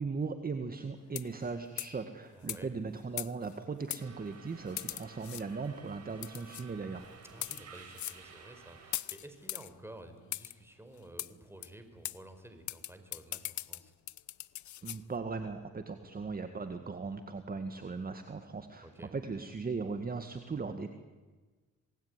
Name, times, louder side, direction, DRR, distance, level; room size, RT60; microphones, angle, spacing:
voice 1, 0.0-7.1 14.8-20.9, right 4 dB, 30° right, 8 dB, 1.9 m, -38 dB
sound 1, 1.1-1.4 1.8-2.0 2.5-2.6 3.2-3.5 3.9-4.0 4.8-5.4 6.2-6.6 7.3-7.6 8.0-8.2 8.9-9.7 10.3-10.5 11.2-11.3 11.6-11.7 12.0-12.2 12.7-15.0, left 14 dB, 70° left, 0.9 m, -39 dB
voice 2, 2.3-2.8 7.3-13.9 18.8-19.1, right 1 dB, 10° right, 8 dB, 5.0 m, -52 dB
Subway metro underground, 4.0-9.0, right 5 dB, 55° right, 5.9 m, -54 dB
27.0 x 20.0 x 9.8 m, 1.3 s
cardioid pair, 90°, 30 cm